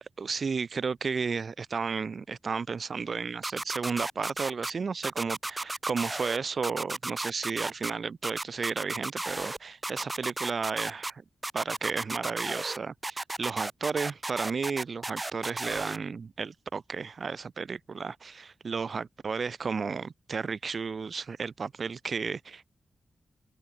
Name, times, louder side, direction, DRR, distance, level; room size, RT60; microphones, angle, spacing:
voice 1, 0.2-11.2 11.5-22.7, right 5 dB, 45° right, 2.5 m, -33 dB
sound 1, 3.4-4.7 5.0-6.4 6.6-7.9 8.2-9.6 9.8-11.1 11.4-12.8 13.0-16.0, right 2 dB, 15° right, 6.8 m, -34 dB
open air
wide cardioid pair, 160°, 0 cm